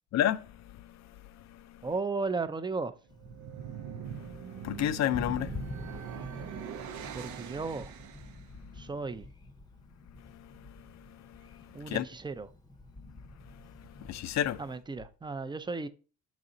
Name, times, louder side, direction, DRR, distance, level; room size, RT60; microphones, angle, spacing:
voice 1, 0.1-1.9 3.9-7.2 8.5-8.9 10.0-12.1 13.0-13.2 13.5-14.6, left 11 dB, 65° left, 0.5 m, -35 dB
voice 2, 1.8-2.9 7.1-7.9 8.7-9.3 11.7-12.5 14.6-15.9, right 4 dB, 15° right, 0.5 m, -35 dB
Thunder, 3.1-14.7, left 2 dB, 15° left, 0.7 m, -47 dB
sound 1, 3.1-8.5, right 8 dB, 70° right, 0.6 m, -42 dB
6.0 x 4.1 x 3.8 m
cardioid pair, 90°, 30 cm